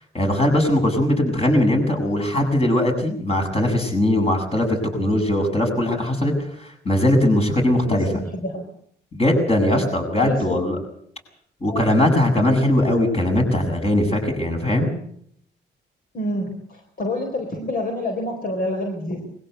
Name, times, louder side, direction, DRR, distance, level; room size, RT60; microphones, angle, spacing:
voice 1, 0.1-8.0 9.1-10.8 11.6-14.9, left 1 dB, 30° left, 3 dB, 7.8 m, -20 dB
voice 2, 7.9-8.6 9.7-9.9 10.2-10.6 11.6-11.9 16.1-19.2, left 1 dB, 50° left, 3 dB, 4.2 m, -28 dB
21.5 x 17.0 x 8.1 m, 0.66 s
cardioid pair, 75°, 19 cm